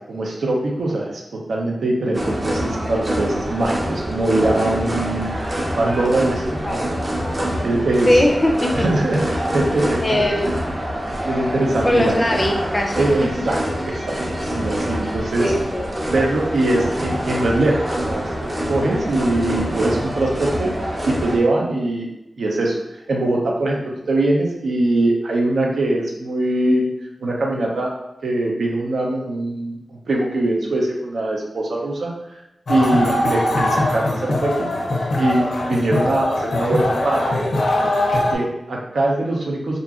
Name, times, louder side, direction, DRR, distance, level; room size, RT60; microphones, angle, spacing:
voice 1, 0.1-1.2 1.5-6.9 7.6-8.2 8.7-10.2 11.2-12.4 13.0-14.2 14.4-15.5 16.1-18.2 18.7-20.7 21.0-22.1 22.4-22.8 23.1-26.9 27.2-27.9 28.2-32.4 32.7-34.7 35.2-37.3 38.1-39.8, right 2 dB, 90° right, -1 dB, 0.5 m, -22 dB
sound 1, 2.1-21.4, equal, 30° right, 0.5 m, -25 dB
voice 2, 8.1-8.8 10.0-10.6 11.8-13.1 15.4-15.9, left 1 dB, 25° left, 2 dB, 0.4 m, -19 dB
sound 2, 32.7-38.4, left 1 dB, 80° left, 0.5 m, -21 dB
2.8 x 2.5 x 2.4 m, 0.88 s
wide cardioid pair, 110°, 0 cm